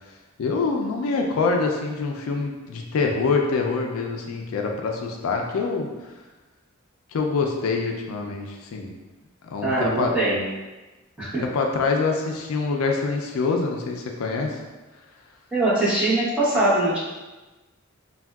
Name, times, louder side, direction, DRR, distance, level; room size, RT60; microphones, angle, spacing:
voice 1, 0.4-5.9 7.1-8.9 9.5-10.1 11.4-14.6, left 4 dB, 80° left, 2 dB, 0.4 m, -25 dB
voice 2, 9.6-10.4 11.2-11.4 15.5-17.0, right 2 dB, 5° right, -11 dB, 1.0 m, -22 dB
3.5 x 2.2 x 2.2 m, 1.2 s
head